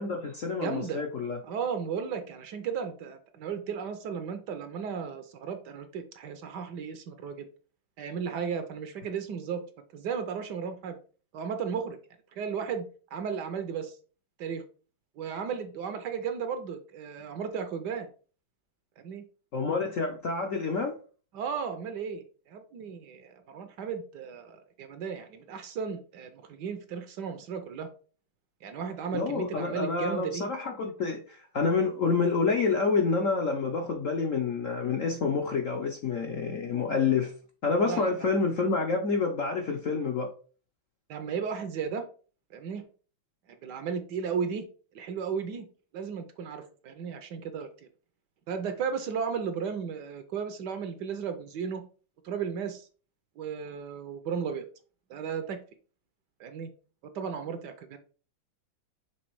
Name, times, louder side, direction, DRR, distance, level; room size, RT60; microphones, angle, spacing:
voice 1, 0.0-1.4 19.5-21.0 29.1-37.3 37.6-40.3, left 4 dB, 60° left, 0.9 m, -28 dB
voice 2, 0.6-1.0 1.4-7.4 8.0-9.6 9.9-11.0 11.3-12.0 12.4-12.8 13.1-14.0 14.4-14.6 15.2-18.1 19.0-19.2 21.3-27.9 28.6-30.5 37.9-38.3 41.1-42.0 42.5-42.9 43.6-44.6 44.9-45.7 45.9-47.7 48.5-51.8 52.2-52.9 53.4-54.6 55.1-55.6 56.4-56.7 57.1-58.0, right 6 dB, 65° right, 1.2 m, -34 dB
6.2 x 3.4 x 4.6 m
omnidirectional pair, 2.2 m